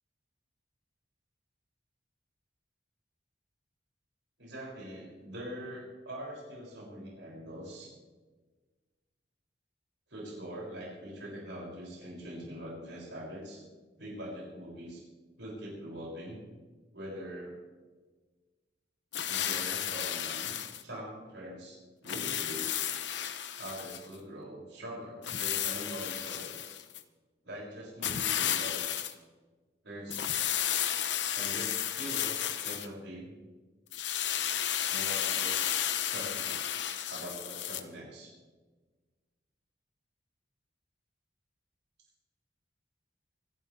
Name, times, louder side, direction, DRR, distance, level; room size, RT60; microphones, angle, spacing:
voice 1, 4.4-7.9 10.1-13.6 14.0-15.0 15.4-16.4 16.9-17.7 19.3-23.1 23.6-26.6 27.4-29.0 29.8-30.3 30.6-30.7 31.3-33.3 34.9-35.6 36.0-36.6 37.1-38.3, equal, 75° right, -4 dB, 6.5 m, -43 dB
sound 1, 19.1-20.8 22.1-24.1 25.2-27.0 28.0-29.1 30.1-32.9 33.9-37.8, left 10 dB, 70° left, 0.9 m, -33 dB
25.5 x 13.0 x 3.4 m, 1.3 s
head